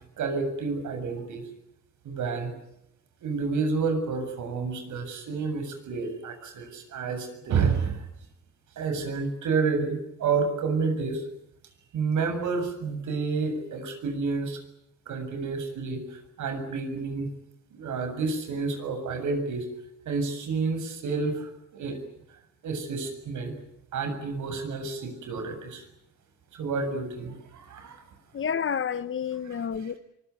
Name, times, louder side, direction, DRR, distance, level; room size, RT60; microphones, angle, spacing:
voice 1, 0.2-1.5 2.0-2.5 3.2-8.1 8.8-11.3 11.9-14.6 15.1-17.3 17.7-19.7 20.1-22.0 22.6-23.5 23.9-25.8 26.5-28.0 29.5-29.6, right 4 dB, 80° right, 7.4 m, -29 dB
voice 2, 28.3-30.0, left 7 dB, 45° left, 1.2 m, -29 dB
24.0 x 22.5 x 9.6 m
cardioid pair, 115°, 29 cm